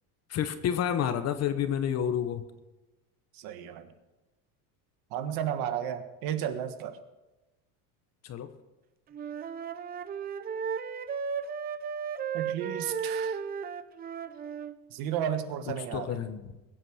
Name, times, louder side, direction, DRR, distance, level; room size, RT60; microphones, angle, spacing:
voice 1, 0.3-2.4 8.2-8.5 15.9-16.4, left 9 dB, 35° left, 11 dB, 1.1 m, -29 dB
voice 2, 3.3-3.9 5.1-7.0 12.3-13.4 14.9-16.2, right 9 dB, 55° right, 9 dB, 1.6 m, -33 dB
Wind instrument woodwind instrument, 9.1-14.8, right 6 dB, 20° right, 0.5 m, -34 dB
21.5 x 8.8 x 6.4 m, 1.0 s
cardioid pair, 155°, 43 cm